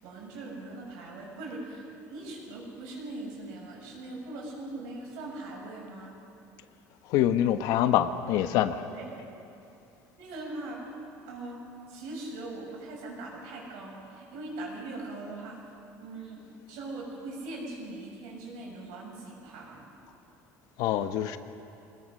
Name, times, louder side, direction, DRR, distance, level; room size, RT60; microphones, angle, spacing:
voice 1, 0.0-6.2 8.9-9.1 10.2-10.8 11.3-11.6 11.9-15.7 16.0-19.9, right 2 dB, 85° right, -2 dB, 7.6 m, -41 dB
voice 2, 7.1-8.8 20.8-21.4, left 11 dB, 65° left, 9 dB, 1.2 m, -25 dB
26.0 x 20.5 x 6.6 m, 2.7 s
cardioid pair, 150°, 7 cm